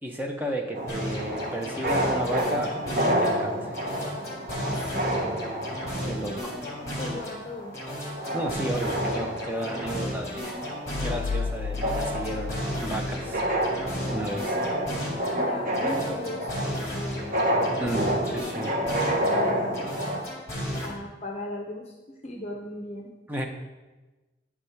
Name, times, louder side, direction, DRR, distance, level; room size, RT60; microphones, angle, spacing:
voice 1, 0.0-3.7 6.0-6.5 8.3-10.6 11.0-13.4 14.1-14.6 17.8-18.8 23.3-23.4, right 1 dB, 10° right, 2 dB, 0.6 m, -33 dB
sound 1, 0.7-20.2, equal, 45° right, 1.0 m, -30 dB
sound 2, 0.9-3.4 3.7-7.4 7.7-11.4 11.7-15.4 15.7-19.4 19.7-20.9, equal, 20° left, 1.9 m, -34 dB
voice 2, 4.6-5.4 6.6-7.8 8.5-8.7 15.3-17.4 18.0-18.3 18.6-19.9 20.8-23.1, left 1 dB, 35° left, 0 dB, 0.7 m, -38 dB
sound 3, 10.9-14.2, left 5 dB, 80° left, 0.3 m, -34 dB
9.6 x 3.6 x 5.6 m, 1.2 s
head